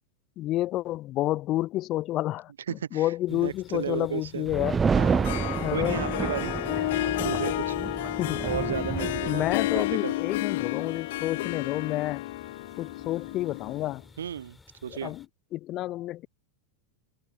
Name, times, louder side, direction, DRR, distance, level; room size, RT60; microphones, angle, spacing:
voice 1, 0.4-4.8 5.6-6.0 8.2-8.4 9.3-12.2 12.8-14.0 14.9-15.2 15.5-16.3, left 15 dB, 35° left, 0.6 m, -29 dB
voice 2, 2.7-4.5 4.9-5.3 5.7-6.6 6.9-7.8 8.4-9.5 9.7-10.1 14.2-14.6 14.8-15.1, right 9 dB, 65° right, 0.6 m, -34 dB
sound 1, 3.3-15.3, left 3 dB, 10° left, 4.1 m, -54 dB
sound 2, 4.5-9.9, right 5 dB, 15° right, 0.8 m, -29 dB
Harp, 5.0-14.0, left 17 dB, 55° left, 1.0 m, -31 dB
figure-of-eight pair, 90°, 0 cm